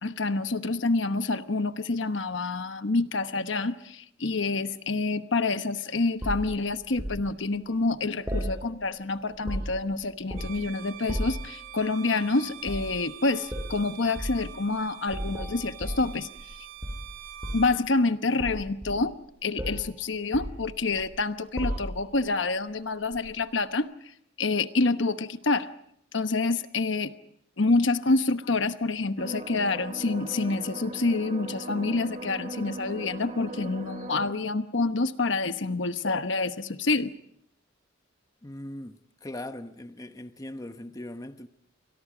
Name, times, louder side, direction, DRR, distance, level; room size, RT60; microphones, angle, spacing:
voice 1, 0.0-16.3 17.5-19.1 19.4-23.9 24.4-25.7 26.1-27.1 27.6-37.1, left 3 dB, 65° left, 1.1 m, -27 dB
sound 1, 6.2-7.2 8.3-9.0 9.3-9.9 10.3-10.7 11.1-11.5 12.6-12.9 13.5-13.7 14.2-14.4 15.1-16.5 16.8-17.8 18.4-19.3 19.6-19.9 20.3-21.1 21.6-22.2 23.1-23.3, equal, 10° right, 7.8 m, -34 dB
Bowed string instrument, 10.3-17.8, right 10 dB, 80° right, 2.9 m, -45 dB
sound 2, 29.2-34.3, right 1 dB, 35° right, 1.1 m, -39 dB
voice 2, 38.4-41.5, left 1 dB, 20° left, 0.9 m, -40 dB
29.5 x 24.5 x 5.0 m
head